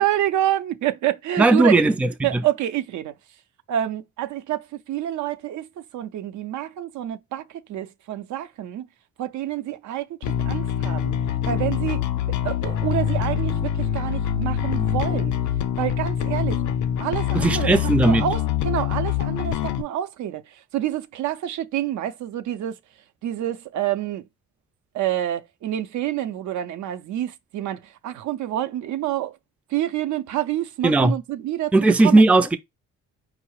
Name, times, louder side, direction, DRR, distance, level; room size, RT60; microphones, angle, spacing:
voice 1, 0.0-1.8 2.2-3.1 3.7-5.7 5.9-7.4 7.7-8.9 9.2-10.2 10.4-11.1 11.5-12.0 12.4-15.4 15.8-16.6 17.0-20.4 20.7-22.8 23.2-24.2 24.9-29.4 29.7-32.2, right 12 dB, 70° right, 0.6 m, -27 dB
voice 2, 1.4-2.4 17.3-18.2 30.8-31.2 31.7-32.6, right 2 dB, 5° right, 0.4 m, -17 dB
Bass guitar, 10.2-19.8, left 10 dB, 70° left, 0.6 m, -24 dB
4.7 x 2.0 x 4.5 m
cardioid pair, 90°, 30 cm